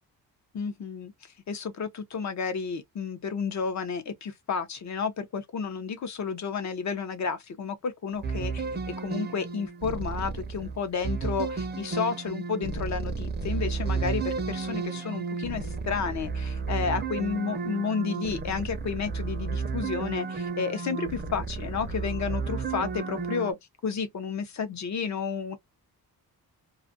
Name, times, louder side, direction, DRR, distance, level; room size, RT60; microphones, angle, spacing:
voice 1, 0.5-1.1 1.5-23.6 23.8-25.6, left 5 dB, 50° left, 0.7 m, -31 dB
sound 1, 8.2-23.5, right 4 dB, 30° right, 0.5 m, -32 dB
2.5 x 2.4 x 2.5 m
wide cardioid pair, 135°, 36 cm